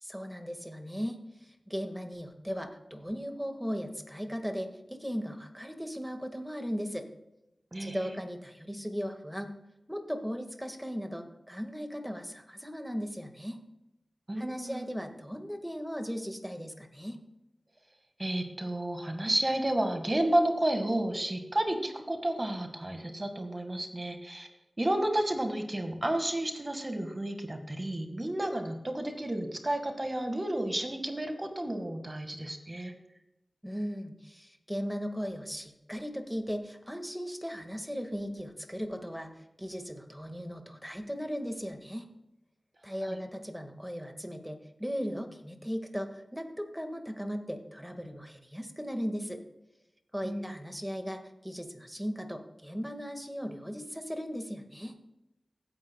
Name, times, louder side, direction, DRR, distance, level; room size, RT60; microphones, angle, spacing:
voice 1, 0.0-7.1 7.8-9.5 9.9-13.6 14.4-17.2 33.6-42.1 42.8-49.4 50.1-55.0, equal, ahead, 5 dB, 1.8 m, -37 dB
voice 2, 7.7-8.1 14.3-14.8 18.2-24.5 24.8-32.9 43.0-43.2 50.2-50.6, right 1 dB, 30° right, 5 dB, 1.8 m, -31 dB
16.5 x 9.5 x 2.3 m, 0.91 s
wide cardioid pair, 55°, 0 cm